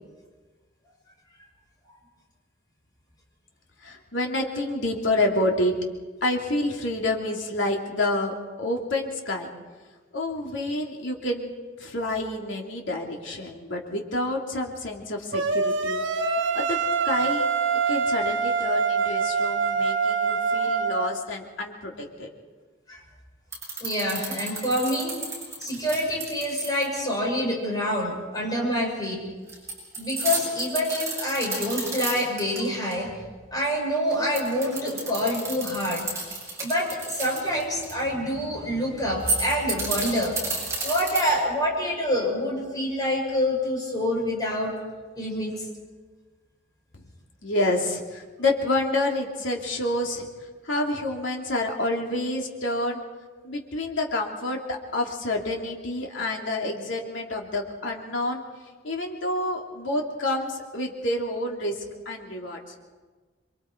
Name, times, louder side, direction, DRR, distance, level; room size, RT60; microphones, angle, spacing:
voice 1, 3.8-5.7 6.2-9.5 10.1-11.5 11.8-16.0 16.3-16.8 17.0-17.5 17.9-22.3 46.9-47.0 47.4-50.3 50.6-53.0 53.4-58.4 58.8-62.6, left 1 dB, 85° left, 0 dB, 2.9 m, -28 dB
sound 1, 15.3-21.1, right 5 dB, 85° right, 1.3 m, -25 dB
sound 2, 23.5-27.0 29.5-32.6 32.9-33.0 34.1-37.9 39.1-41.5, right 3 dB, 15° right, 7.6 m, -31 dB
voice 2, 23.8-25.2 25.6-29.2 30.0-33.2 33.5-36.1 36.6-40.4 40.8-44.7 45.1-45.5, equal, 20° left, -2 dB, 6.3 m, -26 dB
27.5 x 23.5 x 4.6 m, 1.4 s
head